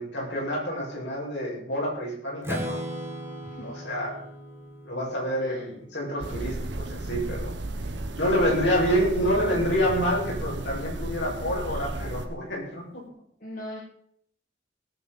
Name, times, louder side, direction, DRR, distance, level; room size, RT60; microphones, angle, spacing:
voice 1, 0.0-2.8 3.6-4.2 4.8-7.5 8.2-13.0, equal, 70° left, -3 dB, 7.1 m, -27 dB
Strum, 2.4-6.4, equal, 15° right, 2.7 m, -37 dB
sound 1, 6.2-12.3, right 2 dB, 80° right, 1.4 m, -34 dB
voice 2, 13.4-13.8, left 1 dB, 50° left, -4 dB, 3.4 m, -39 dB
18.0 x 8.4 x 5.5 m, 0.65 s
head